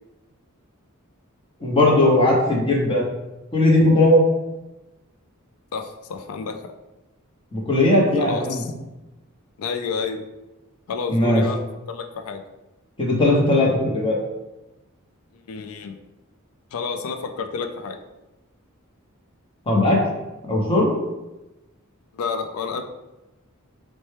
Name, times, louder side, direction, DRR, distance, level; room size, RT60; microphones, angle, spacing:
voice 1, 1.6-3.0 3.5-4.2 7.5-8.6 11.1-11.4 13.0-14.2 19.7-20.1 20.5-20.9, left 1 dB, 25° left, -3 dB, 0.8 m, -18 dB
voice 2, 5.7-6.7 8.2-8.7 9.6-10.2 10.9-12.4 15.3-15.9 16.7-18.0 22.1-22.8, left 5 dB, 80° left, 6 dB, 0.4 m, -30 dB
4.3 x 2.2 x 3.2 m, 1.0 s
head